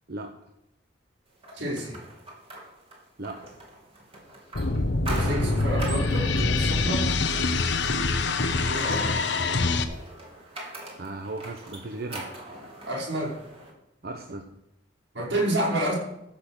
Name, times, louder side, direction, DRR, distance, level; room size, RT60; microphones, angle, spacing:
sound 1, 1.4-13.7, right 1 dB, 35° right, 3.3 m, -42 dB
voice 1, 1.5-2.0 5.1-7.1 8.7-9.1 12.9-13.4 15.1-15.9, right 1 dB, 90° right, -3 dB, 5.4 m, -29 dB
sound 2, 4.5-9.8, left 3 dB, 70° left, 1.0 m, -25 dB
voice 2, 11.0-12.2 14.0-14.4, right 2 dB, 60° right, 5 dB, 0.9 m, -36 dB
15.0 x 6.6 x 6.3 m, 0.82 s
head